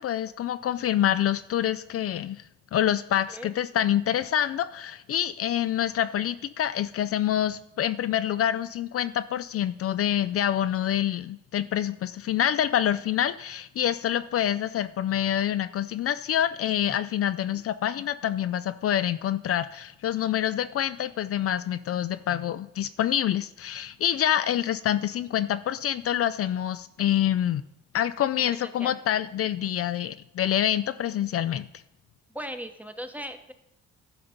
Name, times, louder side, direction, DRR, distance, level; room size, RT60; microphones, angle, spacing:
voice 1, 0.0-2.4 2.7-27.6 27.9-31.7, left 11 dB, 50° left, 13 dB, 0.4 m, -26 dB
voice 2, 28.5-28.9 32.3-33.5, equal, 5° right, 8 dB, 1.0 m, -38 dB
12.0 x 5.8 x 5.1 m, 0.82 s
cardioid pair, 90°, 30 cm